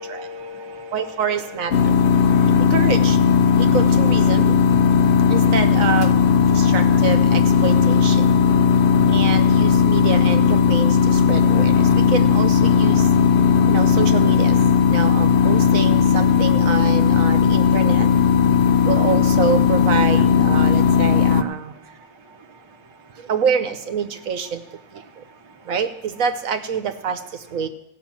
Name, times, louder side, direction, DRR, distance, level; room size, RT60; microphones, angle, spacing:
voice 1, 0.0-2.7 10.1-10.2 22.5-22.6, left 2 dB, 25° right, 4 dB, 0.7 m, -39 dB
voice 2, 0.9-1.9 2.4-3.2 3.6-4.5 5.3-6.1 6.4-8.3 9.1-13.1 13.7-14.6 14.9-18.1 18.8-21.7 23.2-24.6 24.9-25.2 25.6-27.7, right 6 dB, 70° right, 8 dB, 1.1 m, -26 dB
sound 1, 1.7-21.4, left 6 dB, 70° left, 0.5 m, -16 dB
16.5 x 5.6 x 7.2 m, 0.89 s
omnidirectional pair, 1.6 m